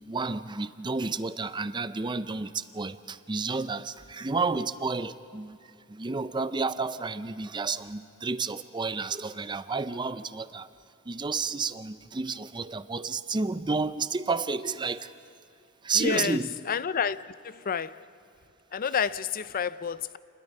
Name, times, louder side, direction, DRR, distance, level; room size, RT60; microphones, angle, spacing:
voice 1, 0.1-5.6 5.9-10.7 11.1-15.1 15.8-16.5, right 4 dB, 20° right, 0.5 m, -31 dB
voice 2, 16.0-16.4 16.7-18.0 18.7-20.2, left 6 dB, 40° left, 0.5 m, -29 dB
28.5 x 21.0 x 5.4 m
head